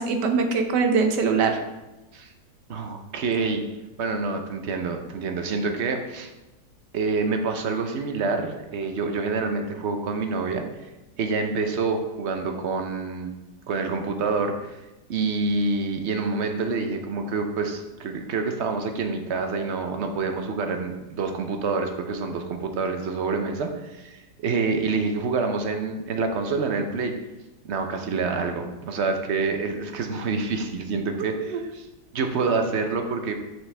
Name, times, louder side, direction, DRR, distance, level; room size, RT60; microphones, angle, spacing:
voice 1, 0.0-1.6 31.2-31.6, right 5 dB, 75° right, 6 dB, 1.4 m, -23 dB
voice 2, 2.7-3.6 4.0-6.3 6.9-10.6 11.2-13.3 13.7-14.8 15.1-27.1 27.6-31.9 32.1-33.3, right 4 dB, 55° right, 5 dB, 0.7 m, -27 dB
7.2 x 6.2 x 3.3 m, 1.0 s
omnidirectional pair, 1.9 m